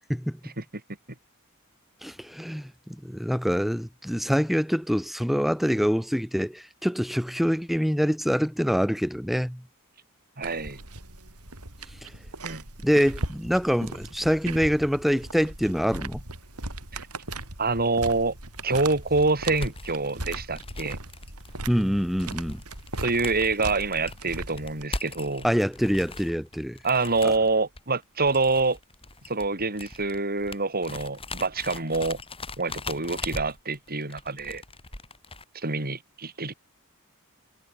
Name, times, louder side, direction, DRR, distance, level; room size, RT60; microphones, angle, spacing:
voice 1, 0.1-0.4 2.0-9.6 12.0-12.1 12.8-16.2 21.7-22.6 25.4-26.8, equal, ahead, 2.7 m, -25 dB
voice 2, 10.4-10.8 12.4-12.6 16.9-17.0 17.6-18.3 18.6-21.0 23.0-25.5 26.8-28.8 29.3-32.2 32.6-34.6 35.5-36.5, right 3 dB, 45° right, 7.2 m, -26 dB
sound 1, 10.4-24.8, right 2 dB, 85° right, 6.8 m, -38 dB
sound 2, 18.5-35.4, left 3 dB, 25° left, 7.3 m, -40 dB
head